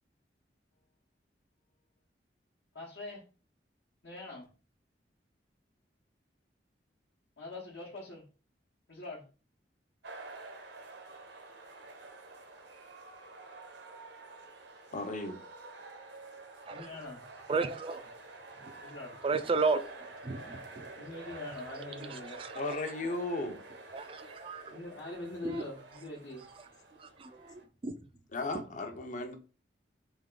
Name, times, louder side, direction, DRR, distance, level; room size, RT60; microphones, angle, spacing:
voice 1, 2.7-3.3 4.0-4.5 7.4-8.3 8.9-9.3 16.7-17.3 18.8-19.2 20.9-22.4 24.7-26.5, left 2 dB, 65° left, 1.0 m, -43 dB
sound 1, 10.0-27.6, right 2 dB, 75° right, 0.9 m, -49 dB
voice 2, 14.9-15.4 22.6-23.6 28.3-29.3, left 2 dB, 45° left, 0.7 m, -35 dB
voice 3, 17.5-18.1 18.6-18.8 19.2-20.9 23.9-24.7 25.4-25.6 27.0-28.0, right 4 dB, 30° right, 0.3 m, -33 dB
3.5 x 3.2 x 3.8 m
head